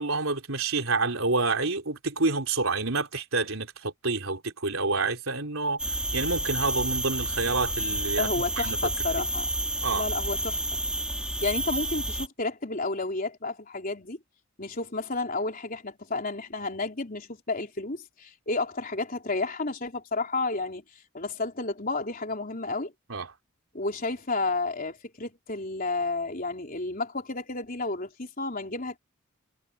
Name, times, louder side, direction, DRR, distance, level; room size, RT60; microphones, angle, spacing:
voice 1, 0.0-8.3 8.6-8.8 9.2-9.3 9.8-10.1 23.1-23.3, right 3 dB, 70° right, 4.1 m, -28 dB
sound 1, 5.8-12.3, right 1 dB, 5° right, 1.6 m, -30 dB
voice 2, 8.2-9.5 9.9-10.6 11.4-14.2 14.6-20.8 21.1-22.9 23.7-29.0, left 3 dB, 40° left, 3.9 m, -31 dB
head